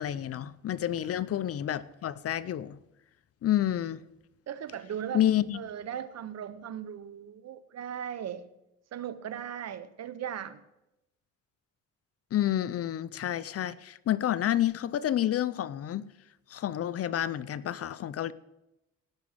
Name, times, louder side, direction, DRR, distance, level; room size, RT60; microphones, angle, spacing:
voice 1, 0.0-2.8 3.4-4.0 5.1-5.6 12.3-16.0 16.5-18.3, left 11 dB, 50° left, 0.5 m, -29 dB
voice 2, 4.5-5.2 5.5-8.5 8.9-10.6, right 9 dB, 60° right, 0.9 m, -38 dB
17.0 x 6.2 x 5.7 m
cardioid pair, 90°, 30 cm